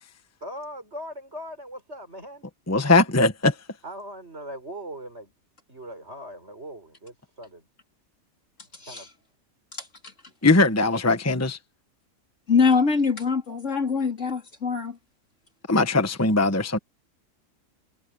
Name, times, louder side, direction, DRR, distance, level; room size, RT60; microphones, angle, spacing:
voice 1, 0.4-2.5 3.8-5.3 5.7-7.7 8.9-9.1, equal, 50° right, 6.6 m, -39 dB
voice 2, 2.7-3.5 10.4-11.6 15.7-16.8, left 2 dB, 10° left, 1.1 m, -20 dB
voice 3, 12.5-15.0, left 5 dB, 60° left, 3.6 m, -23 dB
omnidirectional pair, 1.4 m